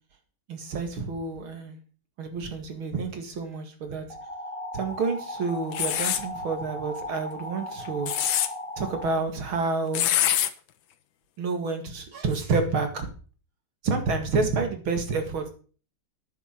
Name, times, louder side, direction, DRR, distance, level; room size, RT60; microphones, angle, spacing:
voice 1, 0.5-1.8 2.2-4.1 4.7-8.1 8.8-10.1 11.4-13.1 13.8-15.5, right 4 dB, 70° right, 6 dB, 2.9 m, -29 dB
sound 1, 4.1-9.1, left 1 dB, 15° left, 1.9 m, -37 dB
sound 2, 5.7-6.2 7.9-8.5 9.9-10.5, left 11 dB, 70° left, 1.6 m, -24 dB
9.7 x 7.2 x 7.6 m, 0.39 s
omnidirectional pair, 2.4 m